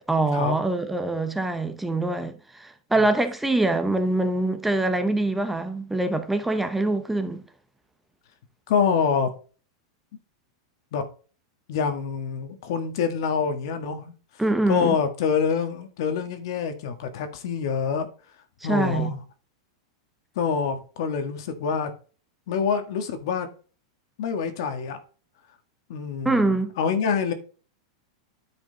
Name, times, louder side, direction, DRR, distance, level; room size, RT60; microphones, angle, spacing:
voice 1, 0.1-7.4 14.4-15.0 18.6-19.1 26.2-26.7, right 2 dB, 5° right, 0.8 m, -24 dB
voice 2, 8.7-9.3 10.9-11.0 11.7-14.1 14.7-18.1 18.6-19.2 20.3-21.9 22.5-23.5 24.2-25.0 25.9-27.3, left 6 dB, 65° left, 1.6 m, -26 dB
9.8 x 5.1 x 3.9 m
supercardioid pair, 130°, 3 cm